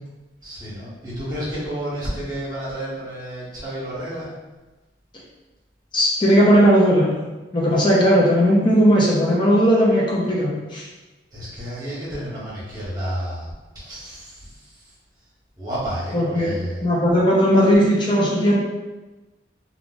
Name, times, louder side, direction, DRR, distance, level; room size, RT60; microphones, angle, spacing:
voice 1, 0.4-4.3 11.3-14.7 15.6-16.8, equal, 20° right, -8 dB, 1.2 m, -31 dB
voice 2, 5.9-7.1 7.5-10.8 16.1-18.5, equal, 25° left, -5 dB, 0.7 m, -17 dB
2.4 x 2.4 x 3.8 m, 1.1 s
head